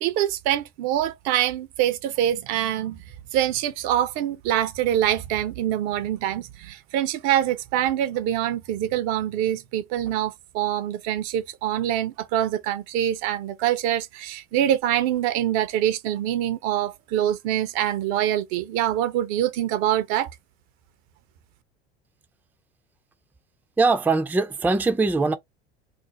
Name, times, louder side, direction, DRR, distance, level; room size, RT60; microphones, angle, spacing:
voice 1, 0.0-3.0 3.3-20.3, right 11 dB, 60° right, 0.6 m, -25 dB
voice 2, 23.8-25.3, right 3 dB, 5° right, 0.4 m, -21 dB
2.6 x 2.0 x 3.8 m
hypercardioid pair, 75°, 31 cm